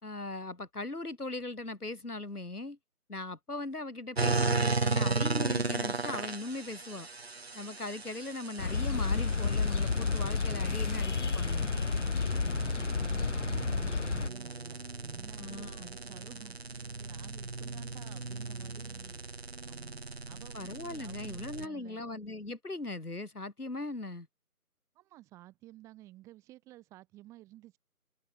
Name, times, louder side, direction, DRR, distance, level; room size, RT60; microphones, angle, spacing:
voice 1, 0.0-2.8 3.1-7.1 7.5-11.7 15.4-15.9 20.5-24.3, left 2 dB, 75° left, 4.1 m, -39 dB
sound 1, 4.2-21.7, right 3 dB, 45° right, 1.1 m, -36 dB
sound 2, 8.6-14.3, left 4 dB, 50° left, 0.5 m, -31 dB
voice 2, 12.3-19.2 19.7-22.0 24.9-27.8, right 16 dB, 5° right, 7.9 m, -53 dB
figure-of-eight pair, 165°, 45 cm